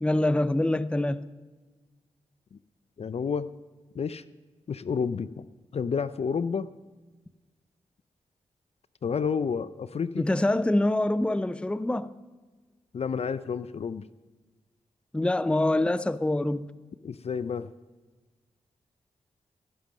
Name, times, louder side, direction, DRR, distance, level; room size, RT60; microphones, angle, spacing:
voice 1, 0.0-1.2 10.2-12.1 15.1-16.7, left 1 dB, 10° left, 0.5 m, -25 dB
voice 2, 3.0-3.5 3.9-4.2 4.7-5.5 5.7-6.7 9.0-10.3 12.9-14.1 17.0-17.7, left 6 dB, 55° left, 0.5 m, -30 dB
15.0 x 11.0 x 6.5 m
cardioid pair, 50°, 13 cm